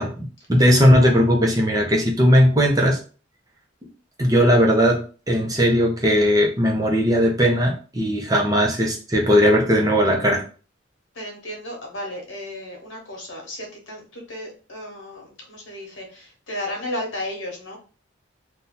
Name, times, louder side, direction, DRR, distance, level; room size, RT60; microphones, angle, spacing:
voice 1, 0.0-3.0 4.2-10.4, equal, 20° right, 0 dB, 0.7 m, -18 dB
voice 2, 11.1-17.8, left 1 dB, 70° left, 1 dB, 1.1 m, -34 dB
2.8 x 2.3 x 3.8 m, 0.37 s
head